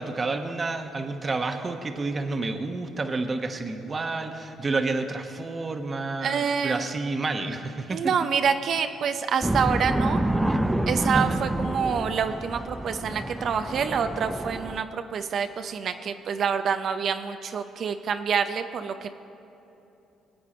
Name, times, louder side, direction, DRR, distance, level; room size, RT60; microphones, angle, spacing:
voice 1, 0.0-8.1 11.1-11.4, right 3 dB, 30° right, 6 dB, 1.1 m, -30 dB
voice 2, 6.2-6.8 7.9-10.2 10.9-19.1, right 6 dB, 60° right, 8 dB, 0.6 m, -27 dB
sound 1, 9.4-14.8, right 1 dB, 10° right, 0.6 m, -28 dB
19.5 x 8.7 x 4.3 m, 2.9 s
supercardioid pair, 75°, 0 cm